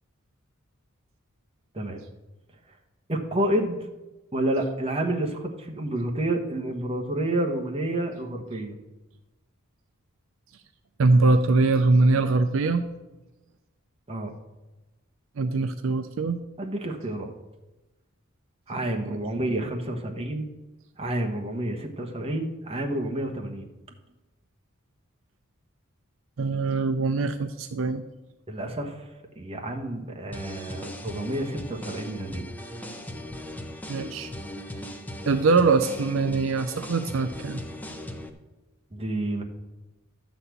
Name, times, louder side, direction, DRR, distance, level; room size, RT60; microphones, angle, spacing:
voice 1, 3.1-3.8 4.3-8.8 14.1-14.3 16.6-17.3 18.7-20.4 21.0-23.7 28.5-29.1 29.3-32.5 38.9-39.4, right 1 dB, 30° right, 3 dB, 1.2 m, -29 dB
voice 2, 11.0-12.9 15.4-16.4 19.0-19.2 26.4-28.0 33.9-34.3 35.3-37.6, right 3 dB, 65° right, 9 dB, 0.5 m, -22 dB
sound 1, 30.3-38.3, left 1 dB, 10° left, 0.7 m, -38 dB
12.0 x 4.2 x 8.1 m, 1.1 s
head